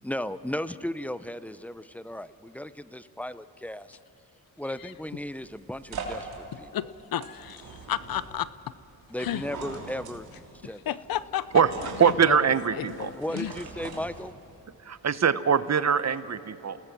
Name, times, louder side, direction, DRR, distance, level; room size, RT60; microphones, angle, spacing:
voice 1, 0.0-4.0 4.6-6.7 9.1-11.0 13.1-14.3, left 1 dB, 5° left, 14 dB, 0.7 m, -36 dB
sound 1, 4.8-14.6, right 4 dB, 75° right, 3.3 m, -42 dB
voice 2, 6.5-8.5 9.2-9.4 10.6-12.4 12.7-13.5, left 11 dB, 65° left, 17 dB, 0.7 m, -33 dB
voice 3, 12.0-13.1 14.9-16.8, right 7 dB, 45° right, 14 dB, 1.0 m, -23 dB
28.5 x 19.0 x 6.1 m, 2.9 s
cardioid pair, 60°, 37 cm